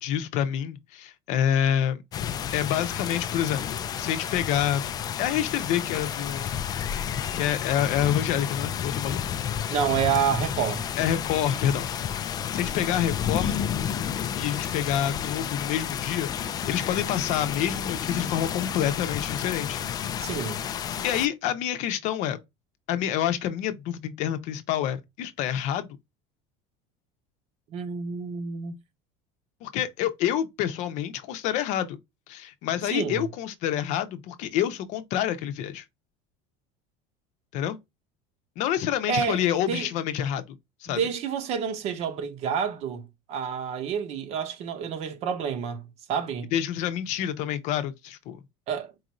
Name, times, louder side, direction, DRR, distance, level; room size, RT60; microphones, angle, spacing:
voice 1, 0.0-2.0 2.5-4.8 5.2-6.6 7.3-9.2 11.0-11.9 12.2-13.6 14.3-19.8 21.0-22.4 22.9-25.9 29.6-32.0 32.3-35.8 37.5-37.8 38.6-40.4 40.8-41.0 46.5-48.4, left 10 dB, 55° left, 0.7 m, -27 dB
sound 1, 2.1-21.3, left 9 dB, 25° left, 0.3 m, -31 dB
voice 2, 9.7-10.8 20.2-20.6 27.7-28.8 32.9-33.2 39.1-39.9 40.9-46.5 48.7-48.9, right 7 dB, 50° right, 0.9 m, -29 dB
4.7 x 2.6 x 2.9 m
cardioid pair, 145°, 14 cm